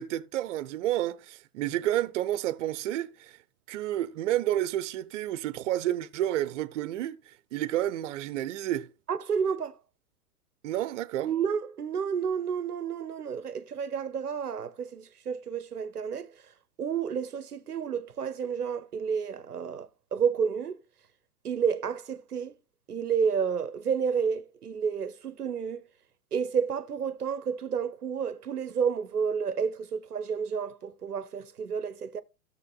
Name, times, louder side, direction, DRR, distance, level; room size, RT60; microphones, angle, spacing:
voice 1, 0.0-3.4 3.7-8.9 10.6-11.3, right 13 dB, 55° right, 0.7 m, -30 dB
voice 2, 9.1-9.8 11.2-16.4 16.8-20.8 21.4-22.5 22.9-25.8 26.3-32.2, right 6 dB, 90° right, 0.7 m, -30 dB
15.0 x 6.8 x 2.3 m
figure-of-eight pair, 105°, 44 cm